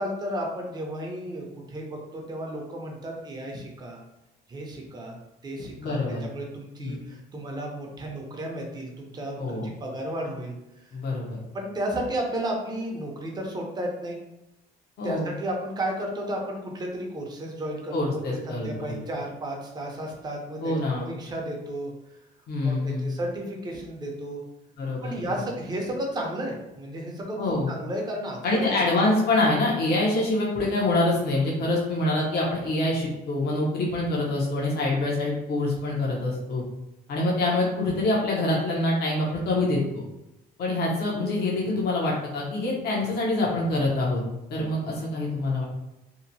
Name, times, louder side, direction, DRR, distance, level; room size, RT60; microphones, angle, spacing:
voice 1, 0.0-4.0 4.5-5.2 5.4-10.6 11.5-14.2 15.0-20.7 21.1-21.9 22.6-24.4 25.0-28.8, right 1 dB, 25° right, 0 dB, 0.6 m, -33 dB
voice 2, 5.8-6.2 6.8-7.0 9.4-9.7 10.9-11.4 15.0-15.3 17.9-19.0 20.6-21.1 22.5-23.1 24.8-25.2 27.4-27.7 28.4-36.6 37.1-40.0 40.6-44.2 44.5-45.6, left 2 dB, 70° left, -4 dB, 0.8 m, -25 dB
2.8 x 2.1 x 2.6 m, 0.90 s
cardioid pair, 110°, 17 cm